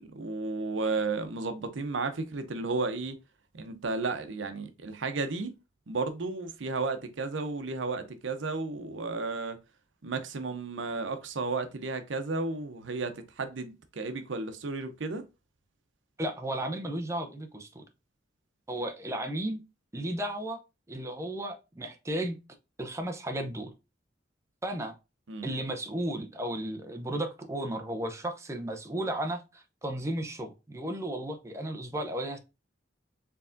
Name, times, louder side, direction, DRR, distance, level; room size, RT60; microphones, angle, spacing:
voice 1, 0.0-3.2 3.5-5.5 5.9-9.6 10.0-15.2 25.3-25.5, right 3 dB, 90° right, 0.7 m, -33 dB
voice 2, 16.2-17.9 18.7-19.6 19.9-20.6 20.9-22.4 22.8-23.7 24.6-25.0 25.4-32.4, right 1 dB, 15° right, 0.6 m, -34 dB
4.6 x 3.5 x 2.5 m
head